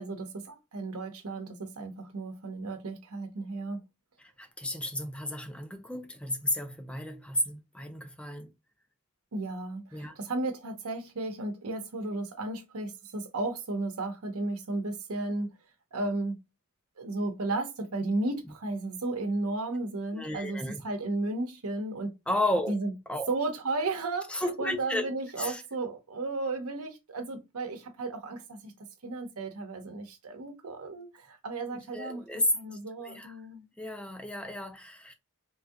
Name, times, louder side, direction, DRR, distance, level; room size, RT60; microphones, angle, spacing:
voice 1, 0.0-3.8 9.3-15.5 15.9-16.3 17.0-20.6 20.8-22.1 22.7-22.9 23.3-28.7 29.0-32.2 32.5-33.7, right 2 dB, 85° right, 0.8 m, -34 dB
voice 2, 4.2-8.5 9.9-10.2 20.1-20.8 22.3-22.8 23.1-23.3 24.3-25.1 25.4-25.6 31.7-33.3 33.8-35.1, left 1 dB, 5° left, 0.4 m, -33 dB
3.4 x 2.7 x 2.3 m
head